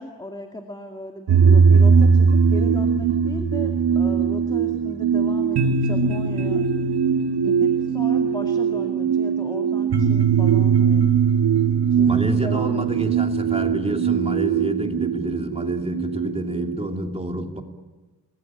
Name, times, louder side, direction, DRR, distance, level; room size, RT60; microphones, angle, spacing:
voice 1, 0.0-6.7 7.4-11.1 11.9-13.3, left 1 dB, 10° left, 3 dB, 2.1 m, -36 dB
sound 1, 1.3-16.8, right 6 dB, 85° right, 2.1 m, -20 dB
voice 2, 12.0-17.6, right 1 dB, 15° right, 3 dB, 2.8 m, -28 dB
28.5 x 21.5 x 9.1 m, 1.3 s
wide cardioid pair, 130°, 39 cm